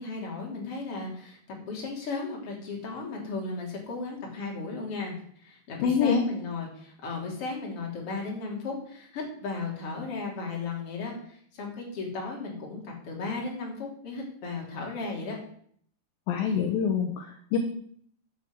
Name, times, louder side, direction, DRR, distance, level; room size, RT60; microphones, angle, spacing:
voice 1, 0.0-15.4, left 3 dB, 35° left, -1 dB, 3.7 m, -35 dB
voice 2, 5.8-6.2 16.3-17.6, left 6 dB, 70° left, 5 dB, 2.4 m, -25 dB
11.0 x 7.3 x 7.8 m, 0.62 s
omnidirectional pair, 4.9 m